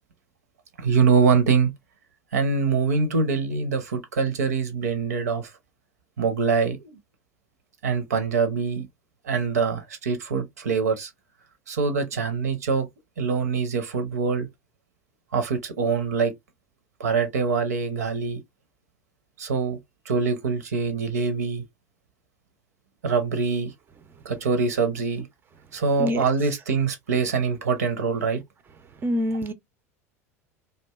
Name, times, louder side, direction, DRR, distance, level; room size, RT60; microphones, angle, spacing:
voice 1, 0.8-1.7 2.3-5.5 6.2-7.0 7.8-8.9 9.2-11.1 11.7-12.9 13.2-14.5 15.3-16.3 17.0-18.4 19.4-19.8 20.1-21.6 23.0-23.7 24.2-25.3 25.7-28.4, right 5 dB, 80° right, 0.6 m, -24 dB
voice 2, 29.0-29.5, equal, 25° right, 0.4 m, -25 dB
2.5 x 2.2 x 2.2 m
figure-of-eight pair, 75°, 8 cm